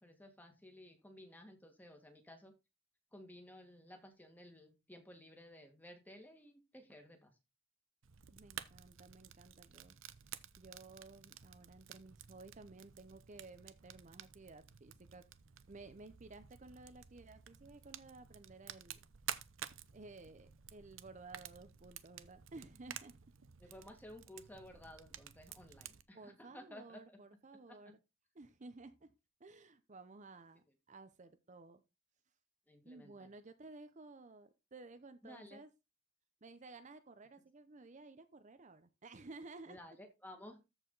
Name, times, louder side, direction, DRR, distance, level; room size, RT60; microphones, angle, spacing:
voice 1, 0.0-2.5 3.1-7.3 23.6-27.2 27.7-27.8 32.7-33.3 35.2-35.6 39.7-40.6, left 1 dB, 10° left, 4 dB, 2.0 m, -55 dB
Fire, 8.0-26.0, right 10 dB, 85° right, 0.7 m, -52 dB
voice 2, 8.3-10.0 10.6-15.2 15.7-19.0 19.9-23.1 23.6-23.7 26.1-28.0 28.3-29.1 29.4-31.8 32.9-35.7 36.4-39.8, right 3 dB, 40° right, 10 dB, 0.7 m, -55 dB
14.0 x 4.9 x 3.9 m, 0.25 s
head